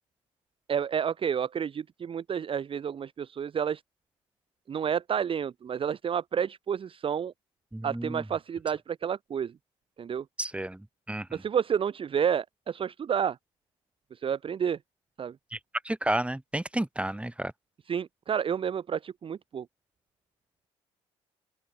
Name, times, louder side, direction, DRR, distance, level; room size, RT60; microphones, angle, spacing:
voice 1, 0.7-3.8 4.7-7.3 7.8-9.5 10.0-10.3 11.3-13.4 14.1-14.8 15.2-15.4 17.9-19.7, right 8 dB, 40° right, 0.6 m, -30 dB
voice 2, 7.7-8.2 10.4-11.4 15.5-15.6 15.8-17.5, right 1 dB, 10° right, 3.6 m, -32 dB
open air
hypercardioid pair, 60°, 14 cm